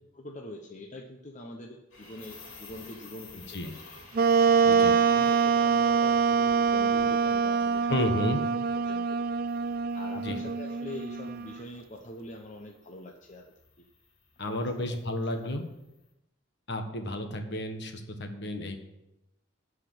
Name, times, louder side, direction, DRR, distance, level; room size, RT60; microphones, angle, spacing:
voice 1, 0.1-3.7 4.5-8.2 8.7-9.2 9.6-13.5 14.4-15.0, left 1 dB, 35° left, 2 dB, 0.8 m, -44 dB
sound 1, 1.9-16.0, left 3 dB, 75° left, 3.1 m, -53 dB
Wind instrument woodwind instrument, 4.1-11.6, right 6 dB, 45° right, 0.4 m, -25 dB
voice 2, 7.9-8.4 10.1-10.4 14.4-15.7 16.7-18.8, left 1 dB, 55° left, 5 dB, 1.4 m, -32 dB
12.5 x 5.0 x 8.6 m, 0.92 s
head